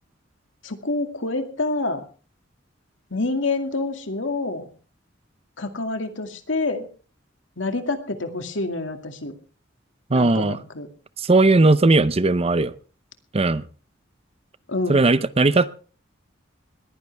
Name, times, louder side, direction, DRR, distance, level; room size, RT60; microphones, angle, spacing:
voice 1, 0.6-2.0 3.1-4.7 5.6-6.9 7.6-9.3 10.1-10.9 14.7-15.1, left 2 dB, 80° left, 6 dB, 2.3 m, -27 dB
voice 2, 10.1-10.6 11.2-12.7 13.3-13.7 14.9-15.8, right 2 dB, 30° right, 15 dB, 0.7 m, -18 dB
21.0 x 15.0 x 3.5 m, 0.38 s
head